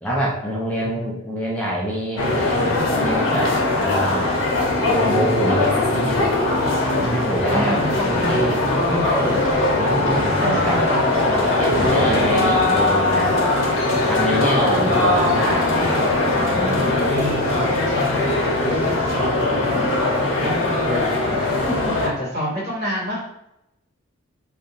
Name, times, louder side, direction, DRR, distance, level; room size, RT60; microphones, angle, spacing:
voice 1, 0.0-4.3 4.9-6.2 7.0-9.2 9.8-10.8 11.3-13.3 14.1-15.9 16.3-17.0 21.6-22.0, equal, 5° left, -5 dB, 0.4 m, -26 dB
sound 1, 2.2-22.1, left 2 dB, 65° left, 0.6 m, -20 dB
voice 2, 7.5-9.4 10.4-11.9 14.7-15.3 17.0-21.7 22.0-23.2, equal, 50° right, -7 dB, 1.3 m, -28 dB
2.4 x 2.4 x 2.8 m, 0.83 s
head